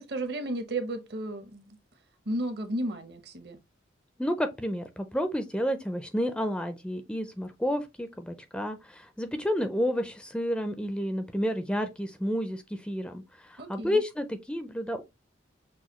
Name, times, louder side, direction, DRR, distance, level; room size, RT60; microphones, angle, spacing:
voice 1, 0.0-1.8 2.3-3.6 13.6-14.0, right 1 dB, 60° right, 0.8 m, -33 dB
voice 2, 4.2-15.0, equal, 5° left, 0.4 m, -30 dB
6.1 x 2.2 x 3.0 m
head